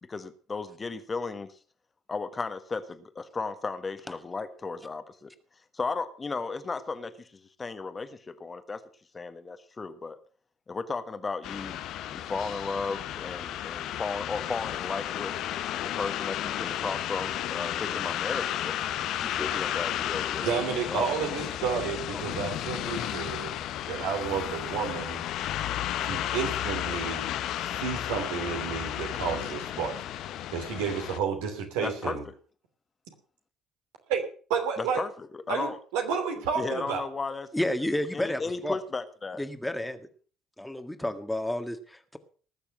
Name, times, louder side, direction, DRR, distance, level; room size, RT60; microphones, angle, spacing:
voice 1, 0.1-1.5 2.1-5.3 5.7-7.3 7.6-8.8 9.1-10.2 10.7-11.8 12.1-15.3 15.8-18.7 19.2-20.5 20.8-21.4 22.1-22.5 31.8-32.2 34.8-35.1 35.5-35.7 36.6-37.5 38.1-39.4, left 4 dB, 30° left, 9 dB, 1.6 m, -35 dB
sound 1, 11.4-31.2, left 12 dB, 60° left, 0.9 m, -33 dB
voice 2, 20.4-23.5 23.9-25.2 26.0-27.3 27.6-29.9 30.5-32.2 34.1-34.2 34.5-35.0 35.5-37.0, right 6 dB, 70° right, 4 dB, 3.0 m, -31 dB
voice 3, 37.5-38.8 39.4-40.0 40.6-42.2, left 1 dB, 5° left, 8 dB, 1.7 m, -31 dB
19.5 x 6.8 x 6.4 m, 0.42 s
hypercardioid pair, 55°, 0 cm